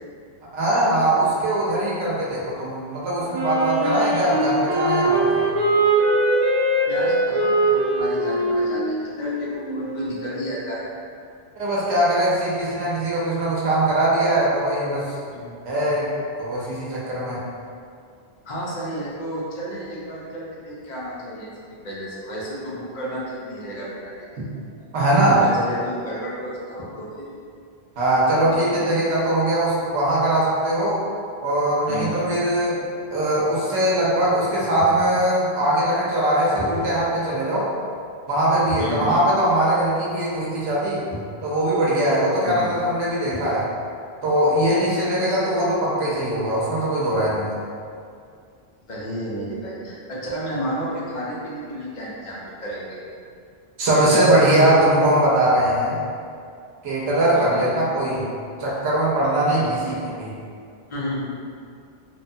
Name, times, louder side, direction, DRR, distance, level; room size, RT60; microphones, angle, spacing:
voice 1, 0.5-5.5 11.5-15.1 15.6-16.1 16.4-17.4 24.4-24.5 24.9-25.4 28.0-31.0 31.4-32.8 33.1-37.7 38.3-41.0 41.4-43.6 44.2-47.6 53.8-56.0 56.8-58.2 58.6-59.8 60.0-60.3, right 1 dB, 90° right, -6 dB, 0.9 m, -21 dB
Wind instrument woodwind instrument, 3.3-10.1, right 1 dB, 40° right, 0.3 m, -21 dB
voice 2, 6.9-10.9 15.3-15.5 18.4-21.5 21.8-24.1 24.8-24.9 25.3-27.3 31.9-32.2 38.8-39.1 42.4-42.8 48.9-53.0 53.9-54.5 57.3-57.7 59.6-59.7 60.9-61.3, equal, 50° left, -6 dB, 0.6 m, -32 dB
sound 1, 33.9-35.3 36.4-37.2 37.5-37.6 38.7-39.5 39.8-39.9 40.8-40.9 41.1-41.4 42.7-42.8 43.0-43.7, equal, 25° left, 1.1 m, -38 dB
2.8 x 2.1 x 2.6 m, 2.3 s
omnidirectional pair, 1.1 m